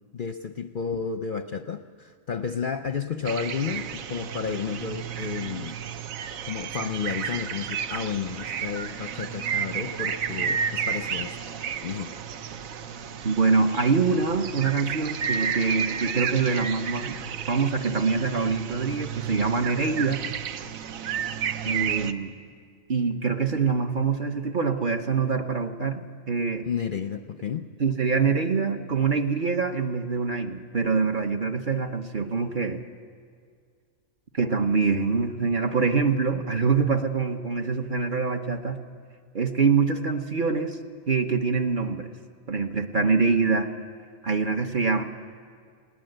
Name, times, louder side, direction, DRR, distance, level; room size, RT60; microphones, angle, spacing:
voice 1, 0.1-5.7 6.4-11.4 11.8-12.2 26.6-27.7, left 6 dB, 50° left, 8 dB, 0.6 m, -32 dB
sound 1, 3.2-22.1, right 8 dB, 85° right, 1.2 m, -32 dB
voice 2, 13.2-17.2 17.5-20.2 21.6-22.4 22.9-26.0 26.3-26.7 27.8-32.8 34.3-38.8 39.3-40.8 41.1-42.1 42.5-43.7 44.2-45.0, right 4 dB, 40° right, 5 dB, 1.0 m, -24 dB
19.5 x 18.5 x 7.9 m, 2.1 s
omnidirectional pair, 1.4 m